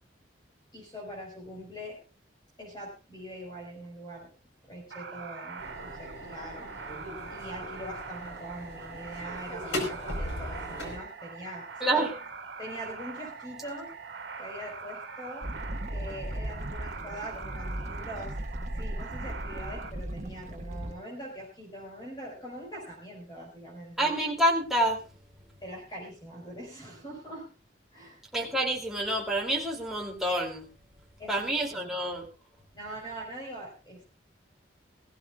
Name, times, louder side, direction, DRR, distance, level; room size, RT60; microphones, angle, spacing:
voice 1, 0.7-2.0 2.6-4.3 4.6-6.7 7.3-11.7 11.9-12.1 12.6-13.9 14.4-15.5 15.9-18.4 18.7-24.1 25.6-27.5 27.9-28.2 31.2-32.0 32.7-34.0, right 1 dB, 25° left, -2 dB, 5.0 m, -42 dB
sound 1, 4.9-19.9, right 5 dB, 80° right, 1.8 m, -43 dB
sound 2, 5.6-11.0, left 1 dB, 75° left, 4.6 m, -38 dB
sound 3, 15.4-20.9, right 1 dB, 40° right, 1.5 m, -37 dB
voice 2, 24.0-25.0 28.3-30.7 31.3-32.3, right 1 dB, ahead, -2 dB, 2.8 m, -27 dB
20.5 x 15.5 x 2.4 m, 0.31 s
head